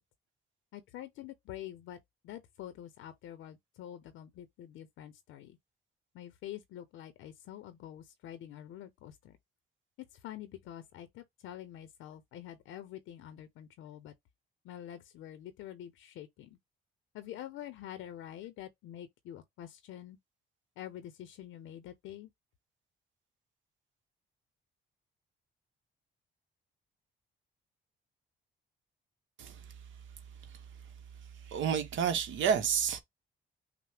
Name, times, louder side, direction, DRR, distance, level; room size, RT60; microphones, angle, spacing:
voice 1, 0.7-2.0 2.2-5.6 6.1-9.4 10.0-14.1 14.6-16.6 17.1-20.2 20.8-22.3, left 12 dB, 90° left, 0.7 m, -46 dB
voice 2, 31.4-33.0, right 7 dB, 75° right, 0.9 m, -30 dB
5.9 x 2.1 x 3.4 m
cardioid pair, 90°, 20 cm